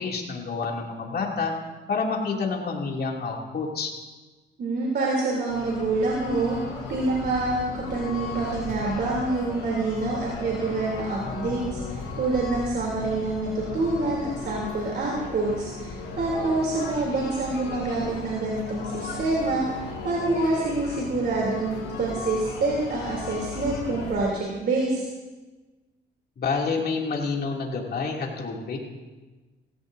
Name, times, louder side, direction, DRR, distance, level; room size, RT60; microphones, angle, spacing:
voice 1, 0.0-1.5 1.9-3.9 26.4-28.8, left 4 dB, 50° left, -1 dB, 2.8 m, -28 dB
voice 2, 4.6-6.6 6.9-25.0, right 2 dB, 55° right, -4 dB, 3.3 m, -27 dB
sound 1, 5.5-24.2, left 4 dB, 80° left, 4.2 m, -36 dB
18.5 x 16.0 x 2.7 m, 1.2 s
cardioid pair, 90°, 20 cm